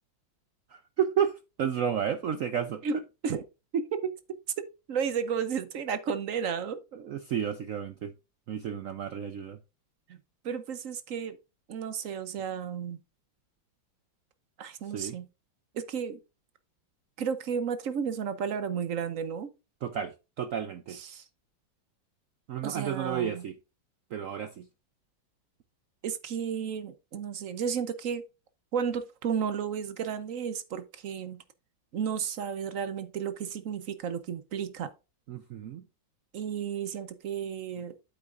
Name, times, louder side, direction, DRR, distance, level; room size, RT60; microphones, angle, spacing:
voice 1, 0.7-3.0 6.9-8.1 8.5-9.6 14.9-15.2 19.8-21.0 22.5-23.5 24.1-24.7 35.3-35.8, right 8 dB, 85° right, 0.7 m, -32 dB
voice 2, 2.8-3.4 3.7-4.1 4.6-6.8 10.4-11.4 11.7-13.0 14.6-15.3 15.7-16.2 17.2-19.5 21.1-21.2 22.6-23.4 26.0-28.2 28.7-31.4 31.9-34.9 36.3-37.9, right 7 dB, 55° right, 0.9 m, -33 dB
8.5 x 8.4 x 2.5 m
omnidirectional pair, 2.1 m